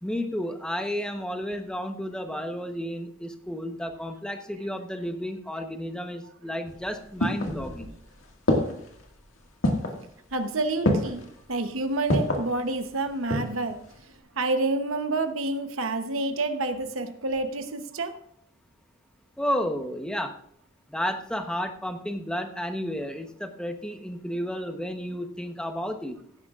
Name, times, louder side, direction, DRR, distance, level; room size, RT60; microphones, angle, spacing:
voice 1, 0.0-7.9 19.4-20.4 20.9-26.2, equal, 5° left, 5 dB, 1.0 m, -32 dB
sound 1, 6.7-8.0 8.5-9.0 9.6-10.0 10.8-11.3 12.1-12.5 13.0-13.6 13.9-14.0, left 1 dB, 75° left, 1.9 m, -25 dB
voice 2, 10.3-13.8 14.4-18.1, right 2 dB, 75° right, 7 dB, 0.9 m, -28 dB
17.0 x 10.5 x 2.5 m, 0.69 s
head